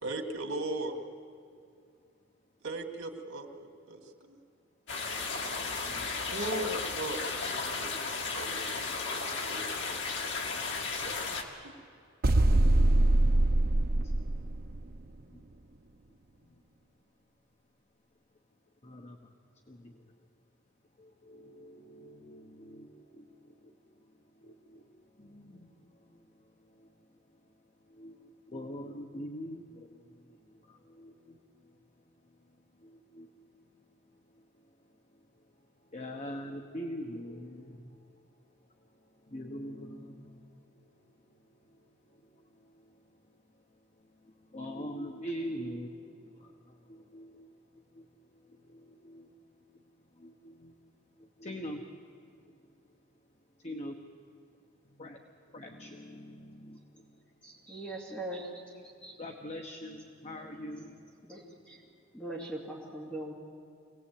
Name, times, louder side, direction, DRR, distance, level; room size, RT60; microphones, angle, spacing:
voice 1, 0.0-1.0 2.6-4.4 6.3-7.9 8.3-9.6 11.0-11.7, right 2 dB, 90° right, 4 dB, 2.2 m, -38 dB
sound 1, 4.9-11.4, left 4 dB, 60° left, 2.1 m, -34 dB
sound 2, 12.2-15.0, right 1 dB, 45° right, 0.7 m, -24 dB
voice 2, 18.8-19.2 19.7-19.8 21.3-22.9 24.4-24.8 25.2-25.7 28.0-29.9 31.0-31.4 32.8-33.3 35.9-37.8 39.3-40.3 44.5-45.9 46.9-47.5 48.0-48.1 48.7-49.3 50.2-50.7 51.4-51.8 53.6-53.9 55.0-55.2 55.5-56.8 59.2-61.0, equal, 35° left, 2 dB, 1.2 m, -42 dB
voice 3, 57.4-58.5 58.8-59.2 61.2-61.8 62.1-63.3, right 1 dB, 5° left, -4 dB, 2.7 m, -41 dB
25.0 x 18.5 x 8.6 m, 2.4 s
head